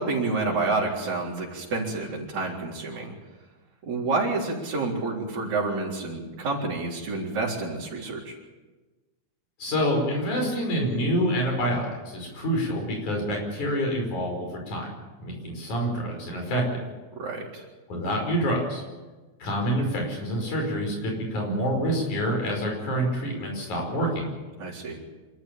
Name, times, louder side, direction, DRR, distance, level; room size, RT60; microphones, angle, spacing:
voice 1, 0.0-3.2 3.9-8.4 17.1-17.6 24.6-25.0, right 3 dB, 70° right, -8 dB, 5.2 m, -29 dB
voice 2, 9.6-14.9 15.2-16.6 17.9-18.8 19.4-24.3, equal, 75° left, 1 dB, 6.9 m, -27 dB
26.5 x 13.5 x 9.0 m, 1.2 s
omnidirectional pair, 3.4 m